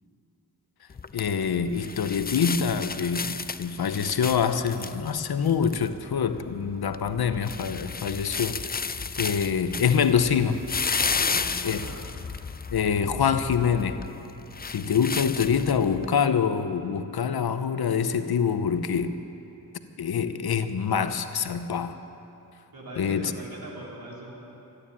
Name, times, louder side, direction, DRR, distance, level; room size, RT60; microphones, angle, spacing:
sound 1, 0.9-16.1, left 5 dB, 25° left, 0.5 m, -33 dB
voice 1, 1.1-8.6 9.2-10.6 11.6-11.8 12.7-14.0 14.7-19.2 20.0-22.0 23.0-23.3, left 7 dB, 75° left, 10 dB, 0.8 m, -25 dB
voice 2, 11.1-12.1 22.7-24.4, right 1 dB, 70° right, -3 dB, 3.7 m, -41 dB
14.5 x 10.0 x 9.9 m, 2.9 s
cardioid pair, 55°, 37 cm